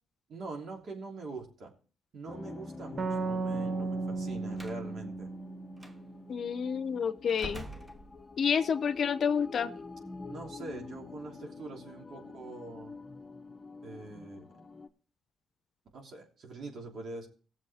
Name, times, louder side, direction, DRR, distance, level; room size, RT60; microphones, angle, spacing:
voice 1, 0.3-1.7 2.1-5.3 10.3-12.9 13.8-14.5 15.9-17.3, right 3 dB, 60° right, 3.1 m, -44 dB
sound 1, 2.3-14.9, left 3 dB, 25° left, 1.0 m, -47 dB
sound 2, 3.0-6.5, right 4 dB, 40° right, 0.7 m, -35 dB
Slam, 4.5-4.8 5.8-6.0 7.3-8.6, right 1 dB, 15° right, 1.1 m, -45 dB
voice 2, 6.3-7.7 8.4-9.7, left 7 dB, 55° left, 0.7 m, -29 dB
18.0 x 7.3 x 3.5 m
cardioid pair, 90°, 0 cm